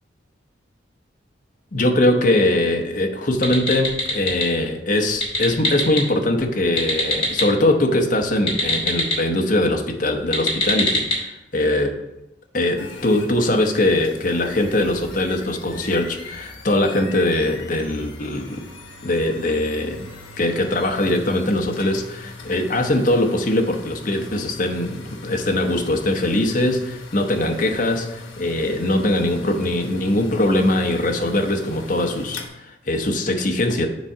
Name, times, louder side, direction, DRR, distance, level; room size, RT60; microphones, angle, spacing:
voice 1, 1.7-12.0 12.5-18.6 19.0-20.1 20.4-33.9, left 1 dB, 45° left, 3 dB, 0.8 m, -21 dB
sound 1, 3.4-4.5 5.1-6.0 6.6-7.5 8.3-9.2 10.2-11.2, left 2 dB, 30° left, 1.6 m, -23 dB
sound 2, 12.7-32.5, left 3 dB, 85° left, 1.1 m, -40 dB
7.1 x 3.7 x 5.5 m, 0.90 s
head